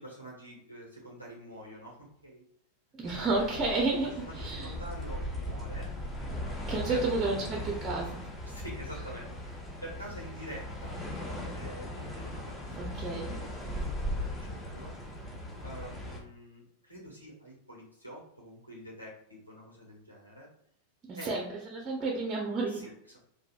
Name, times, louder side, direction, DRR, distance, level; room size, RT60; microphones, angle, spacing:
voice 1, 0.0-2.4 3.1-3.8 4.0-5.9 6.4-6.6 6.9-7.6 8.2-13.6 14.0-14.9 15.6-20.5 21.2-21.4 22.7-23.2, equal, 90° left, -4 dB, 1.4 m, -47 dB
sound 1, 3.0-16.2, left 1 dB, 10° left, 1.0 m, -38 dB
voice 2, 3.0-4.7 6.7-8.2 12.8-13.3 21.1-21.4 21.7-22.8, right 3 dB, 25° right, 0 dB, 0.8 m, -31 dB
4.7 x 2.7 x 2.4 m, 0.71 s
figure-of-eight pair, 90°, 0 cm